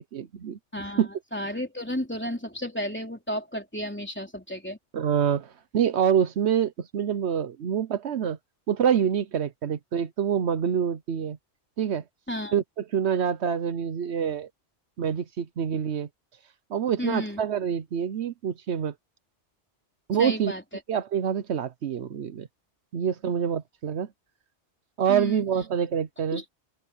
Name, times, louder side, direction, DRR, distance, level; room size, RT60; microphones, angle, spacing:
voice 1, 0.1-0.6 1.0-1.1 4.9-8.4 8.7-11.4 11.8-12.0 12.5-14.5 15.0-16.1 16.7-18.9 20.1-20.5 20.9-22.5 22.9-24.1 25.0-26.4, right 8 dB, 70° right, 1.1 m, -26 dB
voice 2, 0.7-4.8 12.3-12.6 17.0-17.4 20.2-20.6 25.1-25.4 26.3-26.5, equal, 10° left, 3.4 m, -32 dB
open air
omnidirectional pair, 1.2 m